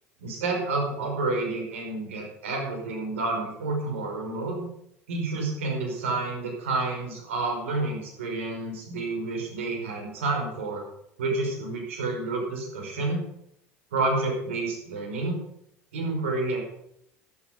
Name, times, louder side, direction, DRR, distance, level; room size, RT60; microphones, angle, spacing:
voice 1, 0.2-4.7 5.1-10.8 11.2-13.2 13.9-15.4 15.9-16.7, right 3 dB, 85° right, 1 dB, 5.4 m, -29 dB
13.5 x 13.0 x 5.2 m, 0.74 s
hypercardioid pair, 75°, 7 cm